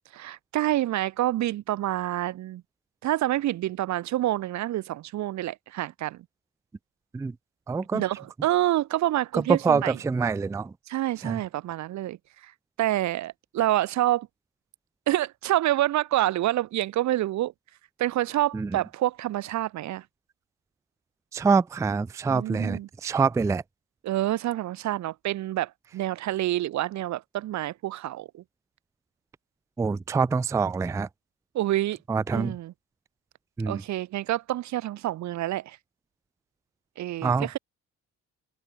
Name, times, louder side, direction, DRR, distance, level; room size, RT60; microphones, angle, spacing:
voice 1, 0.1-2.6 3.0-6.2 7.9-10.0 10.9-12.2 12.4-12.5 12.8-14.3 15.1-17.5 18.0-20.0 22.3-22.9 24.0-28.4 31.5-32.0 32.3-32.7 33.7-35.8 37.0-37.6, right 14 dB, 65° right, 0.8 m, -27 dB
voice 2, 7.7-8.0 9.3-10.7 11.2-11.4 18.5-18.8 21.3-23.6 29.8-31.1 32.1-32.6 33.6-33.8 37.2-37.6, right 5 dB, 10° right, 0.3 m, -25 dB
cardioid pair, 155°, 30 cm